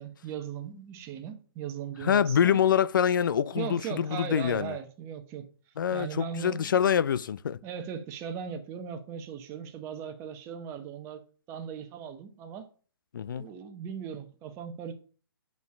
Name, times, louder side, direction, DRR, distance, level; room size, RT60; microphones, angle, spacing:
voice 1, 0.0-2.6 3.6-5.5 5.9-6.8 7.6-11.2 11.5-12.6 13.4-14.9, right 8 dB, 20° right, 1.1 m, -38 dB
voice 2, 2.0-4.8 5.8-7.6 13.1-13.5, left 8 dB, 55° left, 0.5 m, -25 dB
8.2 x 4.7 x 4.8 m
figure-of-eight pair, 140°, 13 cm